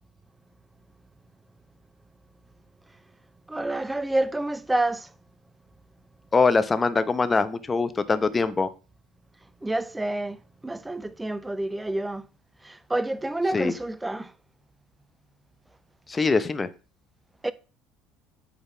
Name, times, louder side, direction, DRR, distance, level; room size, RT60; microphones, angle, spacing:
voice 1, 3.5-5.1 9.6-10.4 10.6-12.3 12.6-14.3 17.4-17.5, right 2 dB, 10° right, 0.6 m, -28 dB
voice 2, 6.3-8.7 13.5-13.7 16.1-16.7, left 4 dB, 25° left, 0.7 m, -23 dB
5.6 x 3.9 x 5.8 m
supercardioid pair, 85°, 0 cm